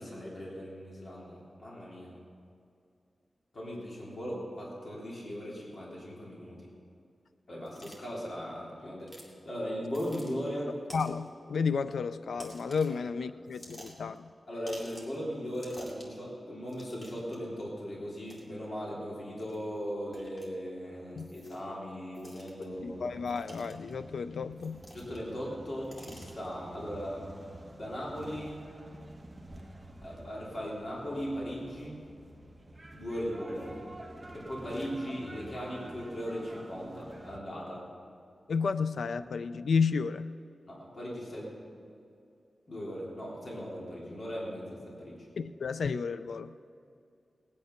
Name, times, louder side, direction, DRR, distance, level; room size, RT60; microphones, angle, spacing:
voice 1, 0.0-2.2 3.5-6.7 7.5-10.7 12.9-13.0 13.6-13.8 14.5-23.0 24.9-27.3 27.7-28.6 30.0-32.0 32.9-33.7 34.3-37.8 40.7-41.6 42.7-45.3, equal, 45° left, -5 dB, 3.2 m, -38 dB
sound 1, 7.7-8.0 9.1-9.3 9.9-10.3 10.9-11.3 12.4-13.0 13.5-14.2 14.7-15.2 15.5-16.2 16.7-17.4 18.3-18.4 19.4-19.6 20.1-20.5 21.2-21.7 22.1-22.6 23.3-23.9 24.6-25.3 25.6-26.5, equal, 25° left, 2.4 m, -51 dB
voice 2, 10.9-14.3 21.2-21.3 22.8-24.8 38.5-40.3 45.4-46.5, left 5 dB, 90° left, 12 dB, 0.4 m, -32 dB
sound 2, 22.7-37.4, right 1 dB, 15° right, 1.1 m, -49 dB
19.0 x 9.5 x 5.7 m, 2.5 s
wide cardioid pair, 150°, 0 cm